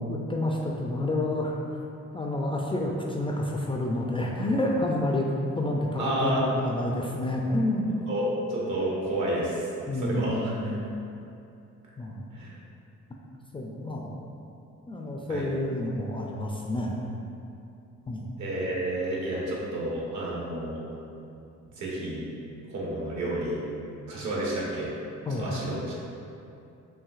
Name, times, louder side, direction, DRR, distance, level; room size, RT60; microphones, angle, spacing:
voice 1, 0.0-1.6 2.1-5.3 5.6-7.9 9.9-10.9 12.0-12.2 13.5-14.1 14.9-17.0 18.1-18.3 25.3-25.5, left 1 dB, 20° left, -1 dB, 0.3 m, -29 dB
voice 2, 6.0-6.4 8.1-10.5 12.3-12.5 15.3-15.4 18.4-20.8 21.6-22.2 22.7-23.6 24.1-24.9 25.4-26.0, right 1 dB, 70° right, -5 dB, 1.2 m, -30 dB
5.7 x 2.7 x 2.4 m, 2.7 s
cardioid pair, 90°, 30 cm